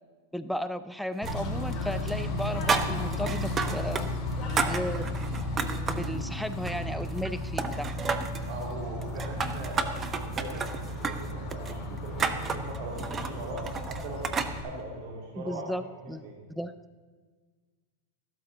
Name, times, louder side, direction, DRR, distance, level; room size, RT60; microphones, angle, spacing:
voice 1, 0.3-4.1 4.7-5.4 5.9-8.1 15.4-16.2 16.5-16.7, equal, ahead, 11 dB, 0.4 m, -35 dB
Bird / Train, 1.2-14.6, left 1 dB, 25° left, 3.2 m, -34 dB
sound 1, 1.3-1.8 2.1-4.1 4.3-6.1 6.5-7.3 7.6-8.5 9.0-14.5, right 5 dB, 20° right, 0.8 m, -32 dB
voice 2, 8.5-16.4, right 2 dB, 60° right, -2 dB, 2.7 m, -40 dB
14.5 x 12.5 x 3.9 m, 1.5 s
supercardioid pair, 135°, 0 cm